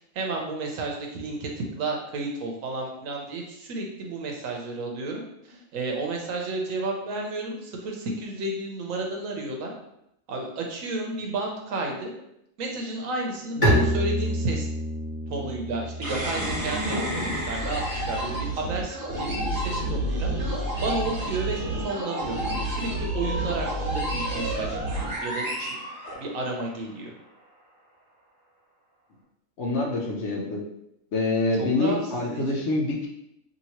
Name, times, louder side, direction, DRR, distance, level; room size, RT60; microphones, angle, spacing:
voice 1, 0.1-9.7 10.3-12.1 12.6-14.7 15.3-20.3 20.8-24.8 25.2-25.8 26.2-27.1 31.6-32.6, right 2 dB, 80° right, 1 dB, 1.1 m, -32 dB
Bowed string instrument, 13.6-19.2, equal, 25° left, 1.1 m, -29 dB
sound 1, 16.0-26.6, right 1 dB, 50° right, 1.3 m, -29 dB
voice 2, 29.6-30.6 31.1-33.1, left 2 dB, 65° left, -1 dB, 0.8 m, -26 dB
2.8 x 2.7 x 2.9 m, 0.80 s
omnidirectional pair, 1.4 m